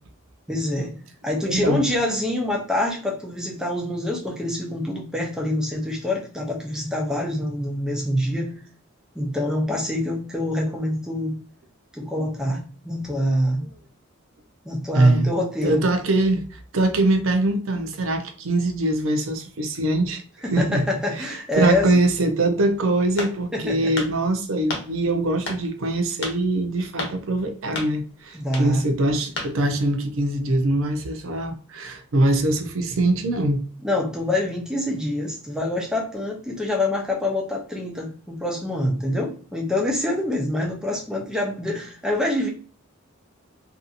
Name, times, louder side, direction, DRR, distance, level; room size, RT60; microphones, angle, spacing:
voice 1, 0.5-0.9 1.2-8.5 9.2-11.3 11.9-13.6 14.6-15.8 20.4-21.9 23.5-23.9 28.3-28.8 33.8-42.5, left 1 dB, 5° right, 0.6 m, -26 dB
voice 2, 1.5-1.8 13.6-13.7 14.9-15.3 15.6-20.2 20.5-20.9 21.1-33.6, right 2 dB, 70° right, 0.5 m, -23 dB
sound 1, 23.2-23.6 24.0-24.1 24.7-24.9 25.5-25.6 26.2-26.4 27.0-27.2 27.8-27.9 28.5-28.7 29.4-29.5, left 2 dB, 55° left, 0.9 m, -30 dB
2.6 x 2.6 x 2.4 m
head